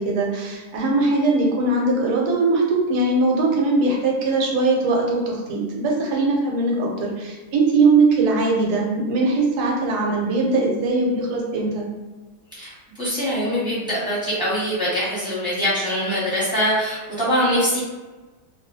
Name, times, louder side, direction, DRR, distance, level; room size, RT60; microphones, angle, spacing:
voice 1, 0.0-11.9, right 3 dB, 80° right, -1 dB, 1.1 m, -20 dB
voice 2, 12.6-17.8, equal, 5° right, -11 dB, 1.1 m, -23 dB
2.6 x 2.4 x 2.5 m, 1.2 s
omnidirectional pair, 1.7 m